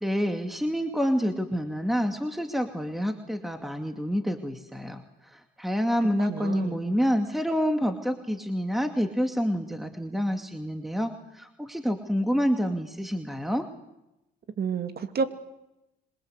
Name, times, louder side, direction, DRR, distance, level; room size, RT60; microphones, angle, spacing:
voice 1, 0.0-5.0 5.6-13.7, equal, ahead, 6 dB, 2.4 m, -28 dB
voice 2, 6.3-6.8 14.6-15.2, right 5 dB, 50° right, 9 dB, 2.5 m, -29 dB
26.0 x 22.5 x 8.3 m, 0.88 s
cardioid pair, 90°, 20 cm